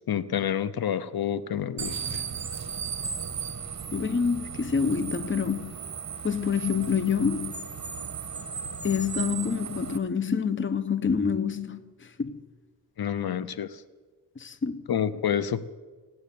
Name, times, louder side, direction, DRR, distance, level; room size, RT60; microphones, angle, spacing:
voice 1, 0.0-2.2 13.0-13.8 14.9-15.7, left 9 dB, 65° left, 0.9 m, -28 dB
sound 1, 1.8-10.0, right 6 dB, 45° right, 1.4 m, -36 dB
voice 2, 3.9-5.8 6.2-7.7 8.8-12.4 14.4-14.9, left 6 dB, 30° left, 0.9 m, -27 dB
17.5 x 9.4 x 8.6 m
cardioid pair, 65°, 39 cm